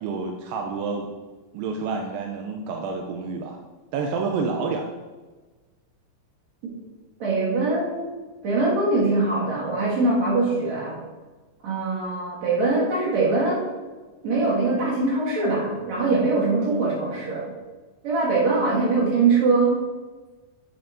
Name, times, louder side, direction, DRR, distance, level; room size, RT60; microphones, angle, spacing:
voice 1, 0.0-1.1 1.5-3.6 3.9-4.9, right 4 dB, 85° right, 2 dB, 2.3 m, -28 dB
voice 2, 7.2-8.1 8.4-11.0 11.6-13.6 14.2-17.5 18.0-19.8, right 3 dB, 55° right, -5 dB, 2.9 m, -22 dB
7.8 x 7.8 x 2.6 m, 1.3 s
omnidirectional pair, 4.1 m